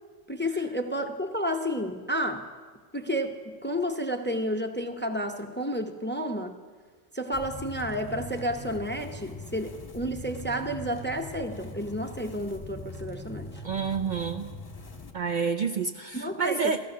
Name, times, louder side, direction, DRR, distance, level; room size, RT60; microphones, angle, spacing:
voice 1, 0.3-2.5 2.9-6.5 7.1-13.5 16.1-16.7, equal, 10° left, 6 dB, 0.6 m, -31 dB
sound 1, 7.3-15.1, left 2 dB, 35° left, 1.2 m, -42 dB
voice 2, 13.6-14.5 15.1-16.8, right 5 dB, 55° right, 7 dB, 0.6 m, -28 dB
15.0 x 14.5 x 6.1 m, 1.5 s
omnidirectional pair, 1.1 m